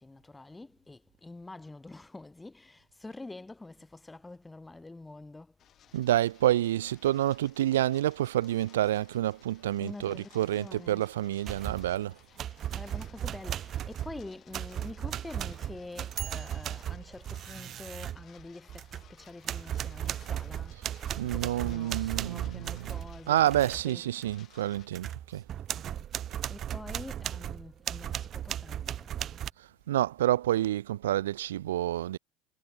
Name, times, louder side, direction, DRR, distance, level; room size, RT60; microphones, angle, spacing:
voice 1, 0.0-5.5 9.8-11.1 12.3-12.4 12.8-20.7 21.2-24.2 25.7-26.1 26.5-29.4, left 2 dB, 10° left, 1.4 m, -46 dB
sound 1, 5.6-24.9, left 10 dB, 45° left, 2.7 m, -60 dB
voice 2, 5.9-12.2 21.2-22.9 23.3-25.4 29.9-32.2, right 13 dB, 85° right, 0.3 m, -28 dB
sound 2, 11.5-12.0 12.4-19.1 19.4-23.8 24.2-24.4 24.8-29.5, right 11 dB, 45° right, 0.7 m, -36 dB
hypercardioid pair, 90°, 0 cm